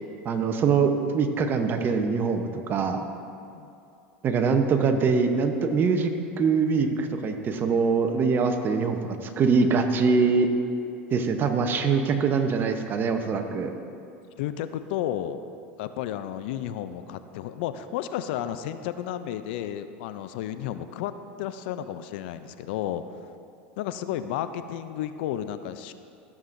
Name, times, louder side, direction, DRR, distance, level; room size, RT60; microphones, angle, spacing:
voice 1, 0.2-3.0 4.2-6.1 6.4-10.5 11.1-13.7, right 5 dB, 35° right, 6 dB, 0.8 m, -23 dB
voice 2, 14.4-15.4 15.8-21.1 21.4-23.0 23.8-25.9, left 11 dB, 70° left, 11 dB, 0.4 m, -32 dB
14.5 x 7.4 x 2.6 m, 2.5 s
hypercardioid pair, 100°, 6 cm